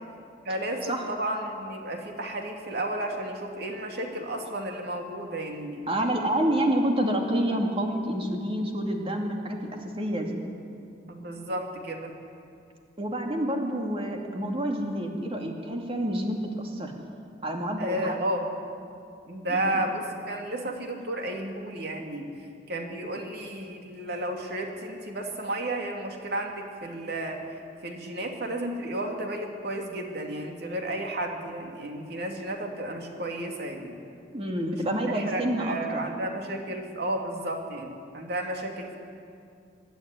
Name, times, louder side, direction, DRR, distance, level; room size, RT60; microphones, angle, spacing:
voice 1, 0.4-5.8 11.1-12.1 17.8-18.5 19.3-22.3 22.7-34.0 34.7-38.9, right 1 dB, 65° right, 2 dB, 2.7 m, -33 dB
voice 2, 5.9-10.4 13.0-16.9 17.4-18.2 19.5-19.9 34.3-35.8, right 1 dB, 30° right, 2 dB, 2.5 m, -28 dB
24.5 x 11.5 x 9.7 m, 2.4 s
head